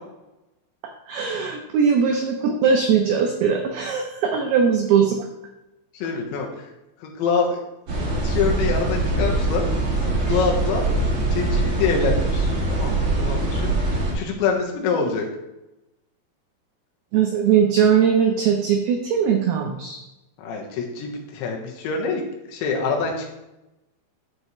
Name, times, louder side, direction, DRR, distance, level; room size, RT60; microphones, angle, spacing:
voice 1, 1.1-5.3 8.0-8.1 10.3-10.4 17.1-20.0, right 7 dB, 85° right, 2 dB, 2.2 m, -20 dB
voice 2, 5.9-6.7 7.0-7.6 8.2-9.7 10.0-15.3 20.4-22.2 22.5-23.3, left 5 dB, 75° left, 1 dB, 3.4 m, -26 dB
sound 1, 7.9-14.1, right 2 dB, 70° right, 1.2 m, -23 dB
12.5 x 5.4 x 3.2 m, 0.94 s
omnidirectional pair, 5.5 m